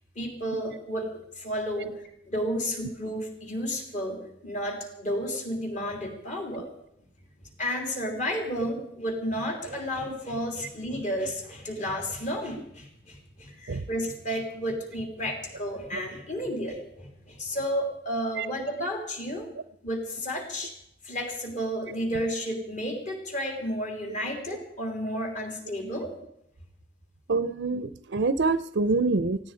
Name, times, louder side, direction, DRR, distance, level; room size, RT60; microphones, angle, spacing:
voice 1, 0.1-1.1 1.4-2.0 2.3-6.7 7.6-19.5 19.8-20.7 21.0-26.1, equal, 40° left, 3 dB, 3.4 m, -32 dB
voice 2, 9.7-10.1 13.7-13.8 18.4-18.5 27.3-29.4, right 3 dB, 80° right, 14 dB, 0.6 m, -26 dB
19.0 x 15.5 x 4.9 m, 0.78 s
head